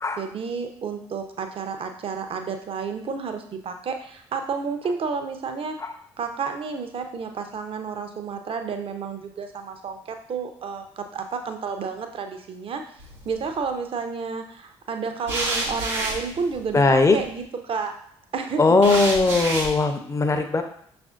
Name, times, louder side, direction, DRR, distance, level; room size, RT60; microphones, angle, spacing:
voice 1, 0.2-5.8 6.2-10.0 10.3-12.8 13.2-17.9 18.3-19.0, right 5 dB, 40° right, 6 dB, 0.6 m, -31 dB
sound 1, 13.0-13.5 15.3-17.3 18.8-19.7, right 2 dB, 90° right, 0.8 m, -29 dB
voice 2, 16.7-17.2 18.6-20.6, left 3 dB, 20° left, 7 dB, 0.5 m, -19 dB
6.0 x 2.5 x 2.4 m, 0.66 s
figure-of-eight pair, 45°, 15 cm